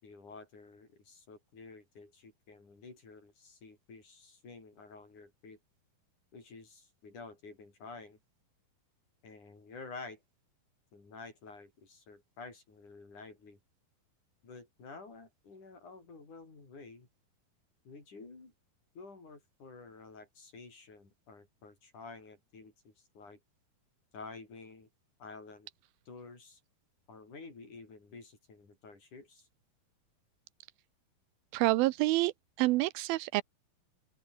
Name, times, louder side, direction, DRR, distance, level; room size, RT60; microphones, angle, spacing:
voice 1, 0.0-5.6 6.3-8.2 9.2-10.2 10.9-13.6 14.4-17.1 17.8-18.5 18.9-23.4 24.1-24.9 25.2-25.7 26.1-26.6 27.1-29.5, left 3 dB, 55° left, 8.3 m, -50 dB
voice 2, 31.5-32.3 32.6-33.4, right 19 dB, 85° right, 2.5 m, -27 dB
open air
omnidirectional pair, 4.3 m